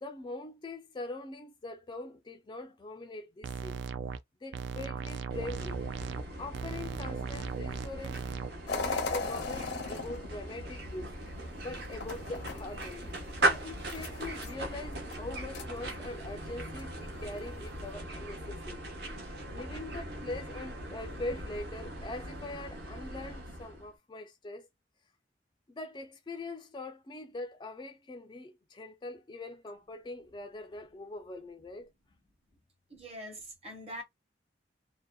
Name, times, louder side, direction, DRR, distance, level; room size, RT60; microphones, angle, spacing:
voice 1, 0.0-3.8 4.4-5.8 6.4-8.2 8.7-11.1 11.6-13.1 13.4-18.9 19.3-24.7 25.7-31.9, left 2 dB, 25° left, 0.3 m, -42 dB
sound 1, 3.4-4.2 4.5-6.2 6.5-8.5, right 6 dB, 80° right, 0.3 m, -37 dB
sound 2, 5.3-23.9, right 1 dB, 65° right, 0.8 m, -39 dB
sound 3, 8.7-17.9, left 3 dB, 70° left, 0.6 m, -41 dB
voice 2, 32.9-34.0, equal, 35° right, 0.9 m, -43 dB
2.6 x 2.1 x 2.3 m
head